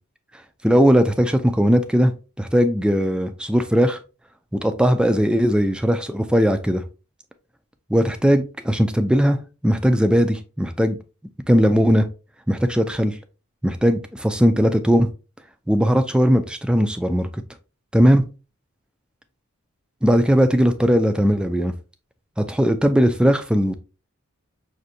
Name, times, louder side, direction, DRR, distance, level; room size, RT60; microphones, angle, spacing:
voice 1, 0.6-2.1 2.4-4.0 4.5-6.8 7.9-9.4 9.6-11.0 11.5-12.1 12.5-13.2 13.6-15.1 15.7-17.3 17.9-18.2 20.0-21.7 22.4-23.7, equal, 5° right, 8 dB, 0.3 m, -18 dB
6.2 x 2.5 x 2.7 m, 0.32 s
head